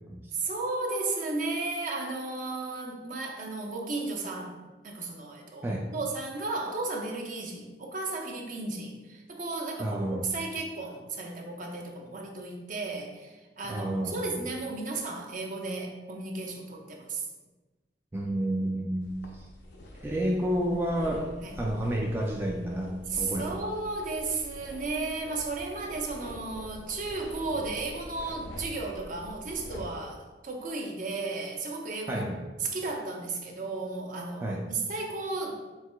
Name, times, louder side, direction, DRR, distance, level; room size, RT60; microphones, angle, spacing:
voice 1, 0.3-4.6 4.8-17.3 21.4-21.6 23.1-32.3 32.6-35.6, right 3 dB, 50° right, 1 dB, 0.7 m, -34 dB
voice 2, 9.8-10.3 13.7-14.4 18.1-19.1 20.0-21.3 21.6-23.5 32.1-32.4 34.4-34.6, right 1 dB, 15° right, -2 dB, 0.3 m, -30 dB
sound 1, 19.0-29.9, left 1 dB, 75° left, 0.6 m, -45 dB
4.6 x 4.1 x 2.2 m, 1.2 s
head